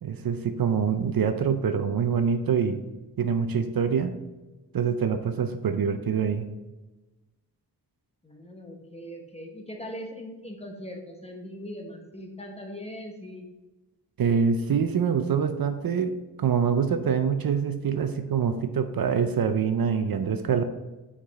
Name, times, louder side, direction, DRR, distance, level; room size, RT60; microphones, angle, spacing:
voice 1, 0.0-2.8 3.2-4.1 4.7-6.5 14.2-20.6, right 6 dB, 60° right, 9 dB, 0.5 m, -25 dB
voice 2, 8.2-13.5, equal, 15° left, 2 dB, 0.9 m, -40 dB
5.8 x 4.9 x 4.1 m, 1.1 s
wide cardioid pair, 135°, 40 cm